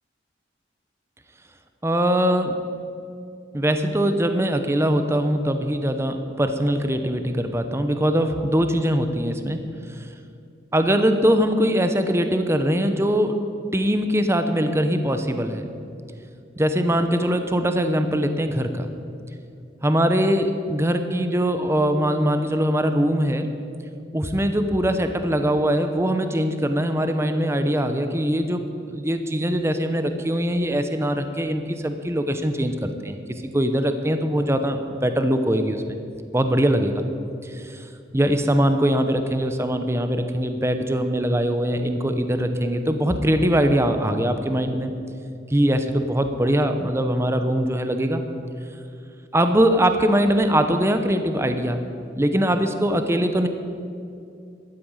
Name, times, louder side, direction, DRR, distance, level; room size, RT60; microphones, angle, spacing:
voice 1, 1.8-2.6 3.5-9.6 10.0-10.1 10.7-13.4 13.7-15.7 16.6-18.9 19.8-23.5 24.1-36.0 36.3-37.0 37.4-37.9 38.1-44.9 45.5-48.2 49.3-51.8 52.2-53.5, equal, 15° right, 7 dB, 0.8 m, -22 dB
13.0 x 9.6 x 8.8 m, 2.5 s
head